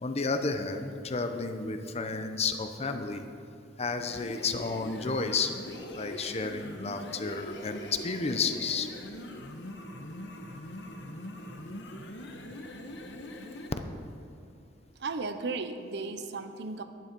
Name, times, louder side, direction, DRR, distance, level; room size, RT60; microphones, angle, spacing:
voice 1, 0.0-3.2 3.8-5.5 5.9-8.9, left 4 dB, 35° left, 7 dB, 0.7 m, -31 dB
sound 1, 4.0-13.8, left 1 dB, 75° left, 1.2 m, -42 dB
voice 2, 15.0-16.8, right 3 dB, 65° right, 9 dB, 0.8 m, -35 dB
12.0 x 10.5 x 5.3 m, 2.6 s
head